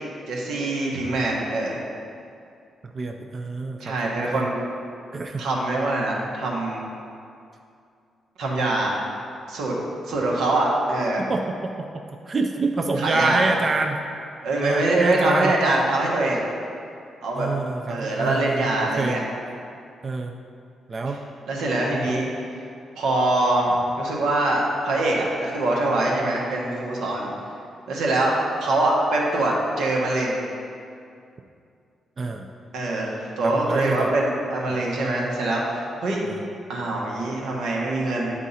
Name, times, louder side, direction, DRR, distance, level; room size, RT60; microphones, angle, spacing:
voice 1, 0.3-1.8 3.8-4.6 5.4-6.8 8.4-9.0 9.5-9.7 10.1-11.2 13.0-13.4 14.4-16.4 17.2-17.5 17.9-19.2 21.5-22.3 23.0-27.3 27.9-28.3 28.6-30.4 32.7-36.2 36.7-38.3, right 2 dB, 85° right, -2 dB, 1.3 m, -23 dB
voice 2, 2.9-4.5 5.1-5.4 11.2-14.0 14.6-15.5 17.4-18.7 19.0-19.2 20.0-20.3 20.9-21.2 32.2-32.5 33.4-34.1 34.7-34.8 36.3-36.4, right 3 dB, 30° right, 3 dB, 0.3 m, -27 dB
9.7 x 3.7 x 4.1 m, 2.4 s
wide cardioid pair, 160°, 0 cm